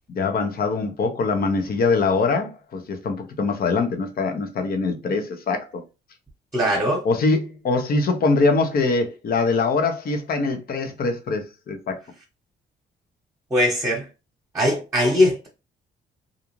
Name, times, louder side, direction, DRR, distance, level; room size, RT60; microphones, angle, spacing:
voice 1, 0.1-5.8 7.0-12.0, left 3 dB, 50° left, 0.7 m, -23 dB
voice 2, 6.5-7.0 13.5-14.0 14.5-15.5, left 1 dB, 15° right, 1.1 m, -20 dB
2.5 x 2.4 x 3.0 m
cardioid pair, 90°, 20 cm